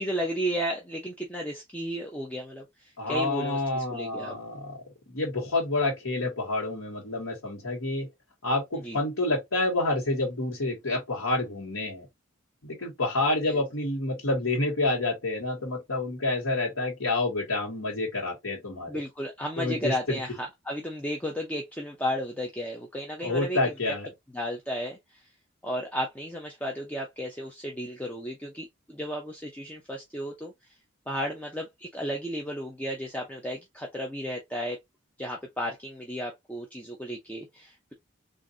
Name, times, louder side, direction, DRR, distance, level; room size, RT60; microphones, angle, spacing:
voice 1, 0.0-4.3 8.8-9.0 13.5-13.6 18.9-23.6 23.9-24.0 24.3-25.2 25.6-30.5 31.1-34.8 35.2-37.9, equal, 5° left, 0.5 m, -33 dB
voice 2, 3.0-4.8 5.1-8.1 8.4-12.1 12.6-19.0 19.6-20.2 23.2-24.1, left 2 dB, 85° left, 1.4 m, -28 dB
3.8 x 2.5 x 2.7 m
head